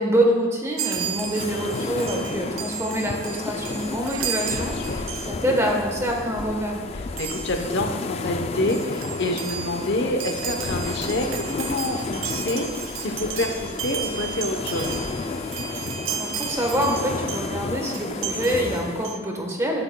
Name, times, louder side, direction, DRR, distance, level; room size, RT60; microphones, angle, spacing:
voice 1, 0.0-6.8 16.1-19.8, equal, 15° right, 0 dB, 1.1 m, -26 dB
Chime, 0.8-5.7 6.0-6.3 7.2-7.8 8.3-8.4 8.6-17.6 17.9-19.2, right 8 dB, 70° right, 0.6 m, -34 dB
sound 1, 0.9-19.1, left 3 dB, 30° left, 0.3 m, -32 dB
voice 2, 7.2-14.9, left 1 dB, 55° left, 4 dB, 0.8 m, -27 dB
15.5 x 7.8 x 2.2 m, 1.5 s
head